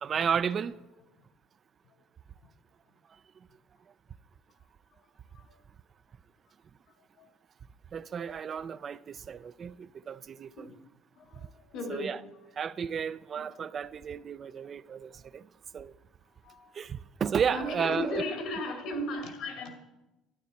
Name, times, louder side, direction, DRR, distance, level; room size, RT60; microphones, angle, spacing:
voice 1, 0.0-0.8 7.9-10.7 11.9-12.2 12.6-15.4 15.7-15.9 16.8-18.2, right 7 dB, 40° right, 0.3 m, -33 dB
voice 2, 11.2-12.3 13.4-13.5 16.4-16.7 17.5-19.8, left 1 dB, 70° left, 2.2 m, -36 dB
12.0 x 9.2 x 4.2 m
cardioid pair, 100°, 0 cm